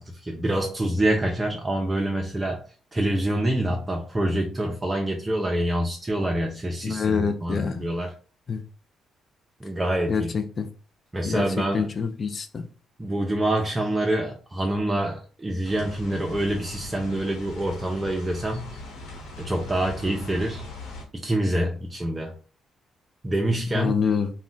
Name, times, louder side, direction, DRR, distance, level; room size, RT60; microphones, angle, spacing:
voice 1, 0.0-2.7 2.9-8.1 9.6-10.3 11.1-11.9 13.0-18.7 19.4-20.6 21.1-22.3 23.2-24.0, right 1 dB, 20° right, 0.4 m, -26 dB
voice 2, 6.8-7.9 8.5-8.6 10.1-10.7 11.2-11.4 11.7-12.7 23.7-24.3, left 5 dB, 45° left, 0.4 m, -26 dB
sound 1, 15.6-21.0, left 2 dB, 85° left, 1.0 m, -40 dB
2.3 x 2.1 x 3.8 m
cardioid pair, 90°, 0 cm